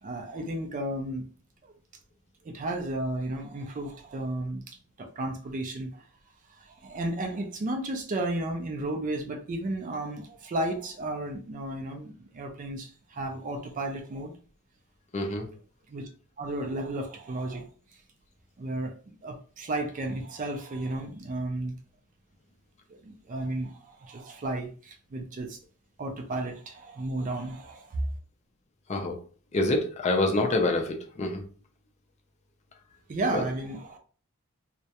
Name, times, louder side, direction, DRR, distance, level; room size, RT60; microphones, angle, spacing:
voice 1, 0.0-1.3 1.6-1.7 2.4-6.1 6.5-14.3 15.4-15.5 15.9-16.1 16.4-17.7 18.6-21.8 22.9-25.6 26.0-28.1 33.1-34.0, right 1 dB, 35° right, 0.4 m, -33 dB
voice 2, 15.1-15.5 28.9-29.2 29.5-31.4 33.3-33.4, left 2 dB, 30° left, 0.4 m, -26 dB
2.3 x 2.1 x 2.8 m
head